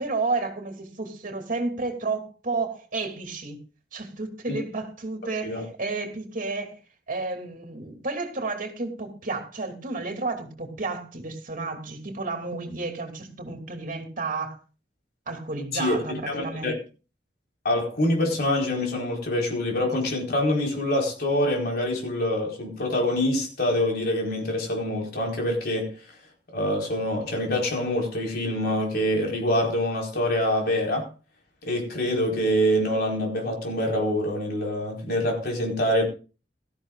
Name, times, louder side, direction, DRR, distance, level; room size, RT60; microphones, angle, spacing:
voice 1, 0.0-3.6 3.9-6.8 7.1-14.6 15.3-16.7, right 3 dB, 50° right, 2.8 m, -31 dB
voice 2, 15.7-16.7 17.6-25.9 26.5-31.1 31.6-36.0, left 1 dB, 60° left, 4.5 m, -25 dB
17.5 x 13.5 x 2.4 m
head